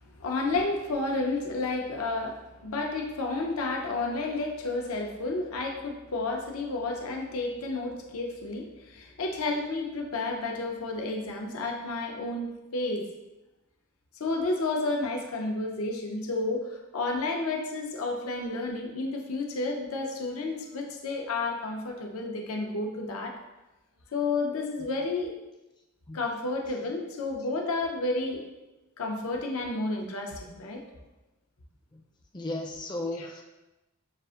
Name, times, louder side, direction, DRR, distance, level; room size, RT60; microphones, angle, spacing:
voice 1, 0.0-13.0 14.2-23.4 24.1-25.3 26.1-28.4 29.0-30.8 33.2-33.3, left 3 dB, 85° left, 1 dB, 0.6 m, -31 dB
voice 2, 32.3-33.4, left 2 dB, 20° left, 1 dB, 0.4 m, -35 dB
6.5 x 2.5 x 2.4 m, 1.0 s
head